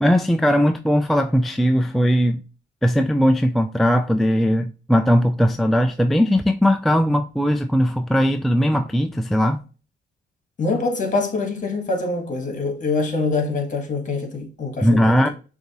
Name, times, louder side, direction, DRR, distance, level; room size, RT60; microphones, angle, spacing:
voice 1, 0.0-2.4 2.8-9.6 14.8-15.3, equal, ahead, 0.3 m, -19 dB
voice 2, 10.6-15.3, left 3 dB, 40° left, 1.6 m, -24 dB
6.4 x 2.8 x 2.9 m
cardioid pair, 90°, 20 cm